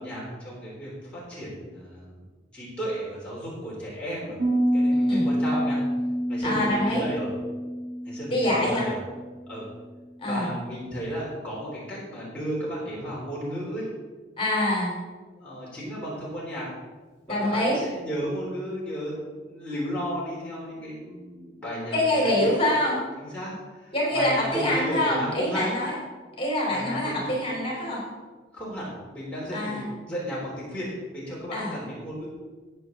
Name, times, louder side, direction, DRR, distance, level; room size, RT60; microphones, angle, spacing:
voice 1, 0.0-2.2 2.5-4.4 4.7-5.8 6.3-7.3 8.1-9.0 9.5-9.7 10.3-13.9 15.3-16.7 17.4-22.7 23.1-25.7 26.7-27.5 28.5-32.3, equal, 5° left, -8 dB, 3.5 m, -34 dB
Piano, 4.4-10.0, equal, 45° right, 3.5 m, -27 dB
voice 2, 4.9-5.3 6.4-7.1 8.3-8.9 10.2-10.6 14.4-14.9 17.3-17.8 21.9-23.0 23.9-25.9 26.4-28.0 29.5-29.8 31.5-31.8, left 1 dB, 30° left, -4 dB, 3.9 m, -25 dB
14.0 x 9.0 x 3.9 m, 1.3 s
head